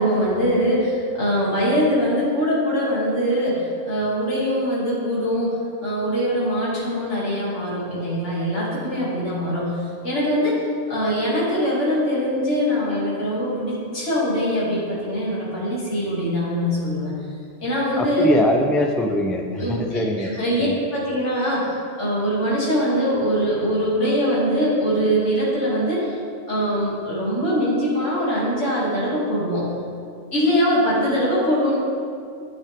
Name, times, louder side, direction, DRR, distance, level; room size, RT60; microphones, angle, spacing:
voice 1, 0.0-5.5 5.8-9.7 10.0-10.6 10.9-17.1 17.6-18.3 19.6-26.2 26.5-29.6 30.3-31.8, equal, 65° left, -7 dB, 3.3 m, -22 dB
voice 2, 18.0-20.8, left 1 dB, ahead, 3 dB, 0.3 m, -22 dB
12.0 x 8.7 x 3.7 m, 2.3 s
omnidirectional pair, 1.3 m